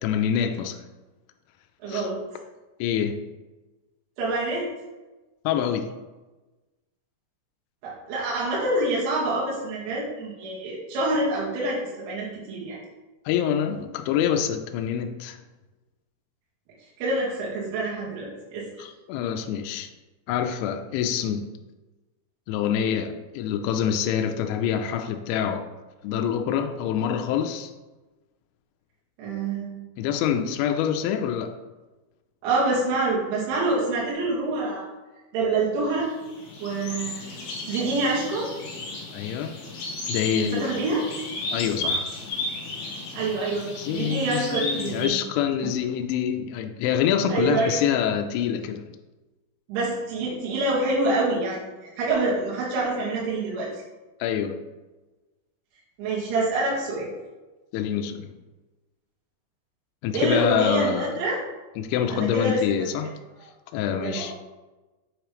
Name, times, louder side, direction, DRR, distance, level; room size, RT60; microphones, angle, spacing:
voice 1, 0.0-0.8 1.9-2.1 2.8-3.2 5.5-5.9 13.3-15.4 18.8-19.9 20.3-21.5 22.5-25.7 26.0-27.7 30.0-31.6 39.1-39.6 40.1-40.7 41.5-42.1 43.8-48.9 54.2-54.6 57.7-58.3 60.0-61.2 61.8-63.1 63.7-64.3, left 9 dB, 90° left, 6 dB, 2.6 m, -26 dB
voice 2, 1.8-2.2 4.2-4.7 7.8-12.8 17.0-18.7 29.2-29.8 32.4-34.9 35.3-36.1 36.6-37.2 37.7-38.5 40.4-41.0 43.1-45.2 47.3-47.8 49.7-53.8 56.0-57.1 60.1-61.4 62.1-62.6 64.0-64.3, right 2 dB, 70° right, -6 dB, 4.0 m, -26 dB
sound 1, 36.0-45.1, left 2 dB, 65° left, 2.5 m, -34 dB
8.2 x 3.1 x 4.8 m, 1.2 s
omnidirectional pair, 5.8 m